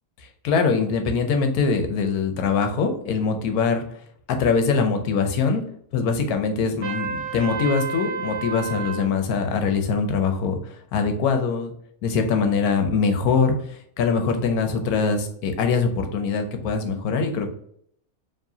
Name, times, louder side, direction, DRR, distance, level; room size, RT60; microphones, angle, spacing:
voice 1, 0.4-3.8 4.3-5.6 5.9-11.7 12.0-17.5, left 5 dB, 85° left, 6 dB, 1.2 m, -23 dB
Trumpet, 6.8-9.1, right 5 dB, 45° right, 0.4 m, -30 dB
4.7 x 3.0 x 2.7 m, 0.67 s
omnidirectional pair, 1.6 m